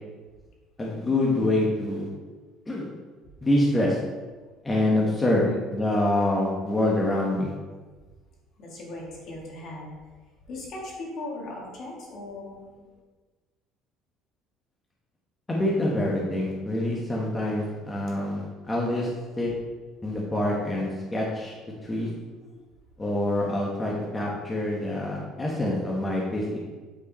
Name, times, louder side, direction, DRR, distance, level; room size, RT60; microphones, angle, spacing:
voice 1, 0.8-2.1 2.7-2.9 3.4-4.0 4.6-5.4 5.7-7.5 15.5-19.1 19.4-19.5 20.0-21.5 21.8-22.1 23.0-26.6, left 1 dB, 15° left, -3 dB, 1.3 m, -26 dB
voice 2, 8.6-9.9 10.5-12.9 22.4-22.6 24.0-24.1, left 2 dB, 55° left, -2 dB, 2.3 m, -39 dB
8.6 x 4.7 x 4.3 m, 1.3 s
cardioid pair, 130°, 0 cm